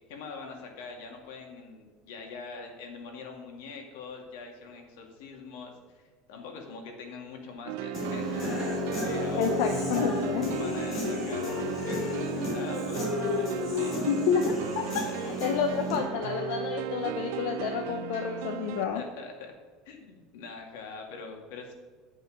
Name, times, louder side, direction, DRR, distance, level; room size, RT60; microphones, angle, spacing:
voice 1, 0.0-8.7 9.0-9.5 10.6-14.0 15.0-15.1 18.9-19.5 19.8-21.7, left 4 dB, 85° left, 2 dB, 2.1 m, -43 dB
sound 1, 7.7-18.8, right 12 dB, 80° right, 0.5 m, -36 dB
Human voice / Guitar, 7.9-16.0, left 2 dB, 30° left, 2.7 m, -32 dB
voice 2, 9.3-10.5 14.1-19.0, left 7 dB, 70° left, 4 dB, 0.8 m, -29 dB
9.5 x 5.4 x 6.2 m, 1.5 s
cardioid pair, 165°, 0 cm